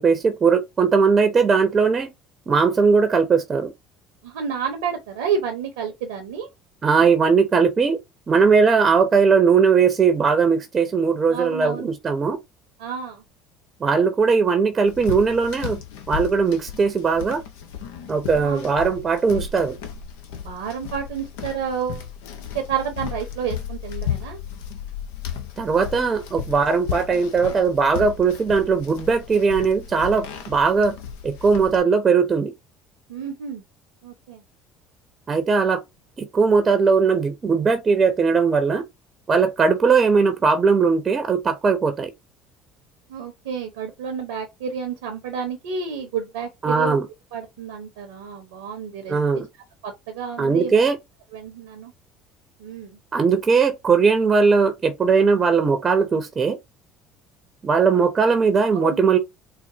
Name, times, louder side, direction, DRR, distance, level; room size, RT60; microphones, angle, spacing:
voice 1, 0.0-2.1 2.5-3.7 6.8-8.0 8.3-12.4 13.8-15.8 16.1-17.4 18.1-19.8 25.6-31.0 31.2-32.5 35.3-35.8 36.2-38.8 39.3-42.1 46.6-47.1 49.1-49.5 50.4-51.0 53.1-56.6 57.6-59.2, right 5 dB, 35° right, 0.7 m, -19 dB
voice 2, 4.2-6.5 11.3-11.9 12.8-13.2 18.4-18.6 20.3-22.0 22.5-24.4 33.1-33.6 34.0-34.4 43.1-47.0 47.3-49.2 49.8-50.8 51.3-51.9 52.6-53.0 58.7-59.0, right 6 dB, 75° right, 0.8 m, -30 dB
sound 1, 14.9-31.8, left 9 dB, 75° left, 0.7 m, -34 dB
4.1 x 2.1 x 2.7 m
hypercardioid pair, 65°, 0 cm